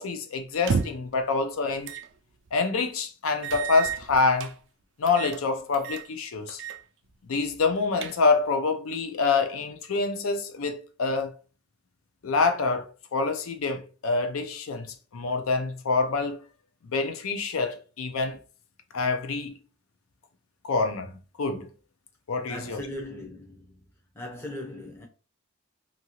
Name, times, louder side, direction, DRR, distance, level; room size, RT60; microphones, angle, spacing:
voice 1, 0.0-1.9 2.5-4.5 5.0-6.6 7.3-11.3 12.2-16.4 16.9-18.4 18.9-19.5 20.6-21.7 22.3-22.8, left 4 dB, 85° left, 0.5 m, -26 dB
sound 1, 0.5-1.1 1.8-2.1 2.5-2.6 3.4-4.5 5.1-5.4 5.7-6.1 6.5-6.8 7.1-7.2 7.7-8.5, right 6 dB, 60° right, 0.3 m, -32 dB
voice 2, 22.5-23.8 24.1-25.1, left 1 dB, 10° left, 0.5 m, -38 dB
2.8 x 2.5 x 2.9 m
head